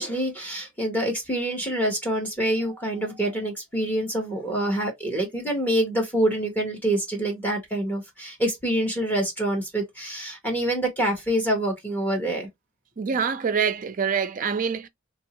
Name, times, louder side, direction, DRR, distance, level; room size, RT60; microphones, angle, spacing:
voice 1, 0.0-12.5, right 1 dB, 10° left, 1.0 m, -26 dB
voice 2, 13.0-14.9, right 6 dB, 40° right, 0.4 m, -25 dB
2.8 x 2.7 x 2.9 m
head